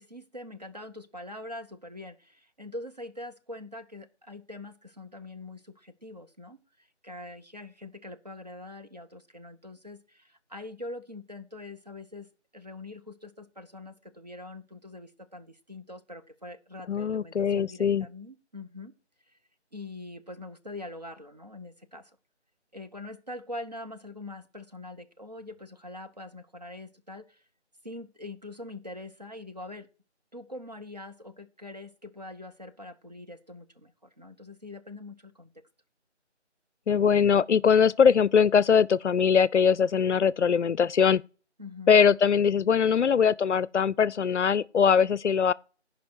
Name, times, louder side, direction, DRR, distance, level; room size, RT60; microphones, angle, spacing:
voice 1, 0.0-6.6 7.0-18.9 19.7-22.1 22.7-27.4 27.8-29.9 30.3-35.6 41.6-42.0, left 2 dB, 35° right, 0.6 m, -43 dB
voice 2, 16.9-18.1 36.9-41.2 41.9-45.5, left 7 dB, 75° left, 0.5 m, -22 dB
14.5 x 5.2 x 4.4 m
figure-of-eight pair, 165°, 35 cm